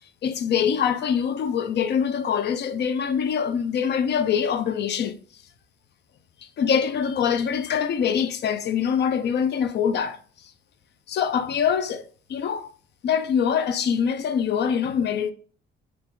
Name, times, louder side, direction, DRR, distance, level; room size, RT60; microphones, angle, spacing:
voice 1, 0.2-5.2 6.6-10.2 11.1-12.0 12.3-12.7 13.0-15.3, left 7 dB, 60° left, 0.5 m, -24 dB
5.8 x 2.5 x 3.7 m
cardioid pair, 90°, 20 cm